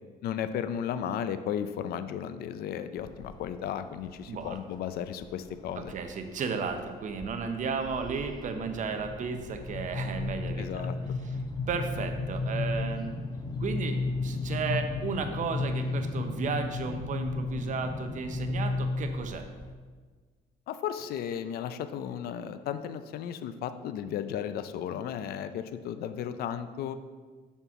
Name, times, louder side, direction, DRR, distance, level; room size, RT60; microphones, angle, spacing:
voice 1, 0.2-5.9 10.6-10.9 20.7-27.0, left 9 dB, 65° left, 11 dB, 0.5 m, -34 dB
sound 1, 3.0-3.5 4.0-4.6 5.2-6.1 6.5-6.8 7.1-19.7, left 3 dB, 25° left, 0.7 m, -34 dB
voice 2, 4.3-4.6 5.9-10.9 11.2-11.4 11.7-13.2 13.6-19.5, right 5 dB, 50° right, 6 dB, 0.8 m, -34 dB
6.9 x 4.4 x 5.9 m, 1.4 s
cardioid pair, 110°, 17 cm